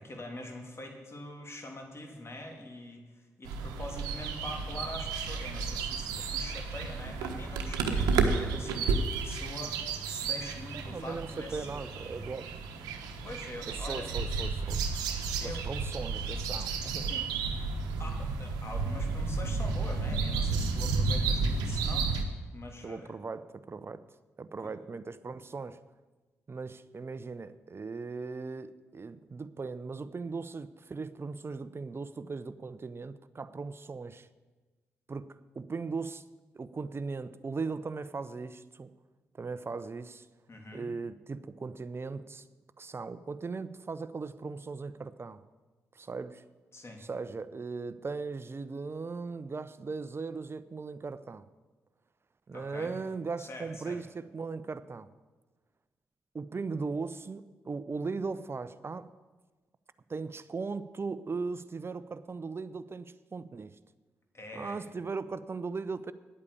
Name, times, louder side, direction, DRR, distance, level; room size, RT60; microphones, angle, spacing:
voice 1, 0.0-11.9 13.2-14.1 15.4-15.7 17.1-17.3 18.0-22.1 22.5-23.1 24.6-24.7 40.5-40.9 46.7-47.0 52.5-52.9 53.4-54.0 64.3-64.8, left 1 dB, 40° left, 3 dB, 3.0 m, -44 dB
sound 1, 3.4-22.2, right 4 dB, 85° right, 1.1 m, -32 dB
voice 2, 10.7-12.5 13.7-14.8 15.4-17.1 22.8-24.0 24.4-25.8 26.5-34.3 35.1-36.2 36.5-38.9 39.3-40.3 40.7-42.5 42.8-45.4 45.9-46.4 47.0-51.5 52.5-55.1 56.3-59.1 60.1-63.8 64.5-66.1, right 4 dB, 40° right, 14 dB, 0.8 m, -38 dB
9.8 x 8.6 x 8.6 m, 1.3 s
hypercardioid pair, 40°, 7 cm